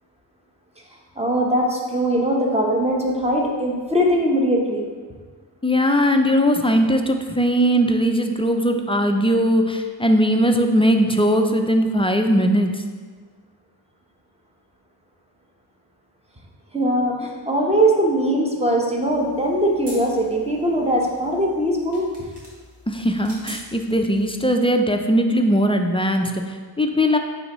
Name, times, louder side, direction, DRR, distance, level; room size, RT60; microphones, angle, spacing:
voice 1, 1.2-4.8 16.7-22.1, right 1 dB, 15° right, 0 dB, 0.9 m, -21 dB
voice 2, 5.6-12.8 22.9-27.2, equal, 15° left, 4 dB, 0.3 m, -19 dB
sound 1, 19.0-24.5, equal, 65° right, 1.6 m, -44 dB
9.2 x 3.4 x 3.0 m, 1.5 s
wide cardioid pair, 90°, 45 cm